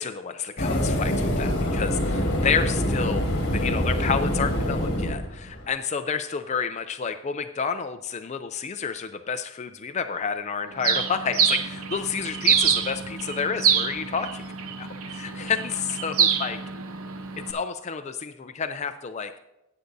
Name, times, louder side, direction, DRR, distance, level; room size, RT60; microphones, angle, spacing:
voice 1, 0.0-3.3 3.5-14.5 14.8-16.6 17.5-19.3, left 6 dB, 30° left, 8 dB, 0.4 m, -30 dB
sound 1, 0.6-5.7, equal, 50° left, 1.7 m, -25 dB
Bird, 10.8-17.5, right 7 dB, 75° right, 0.8 m, -26 dB
16.5 x 8.1 x 2.7 m, 0.93 s
head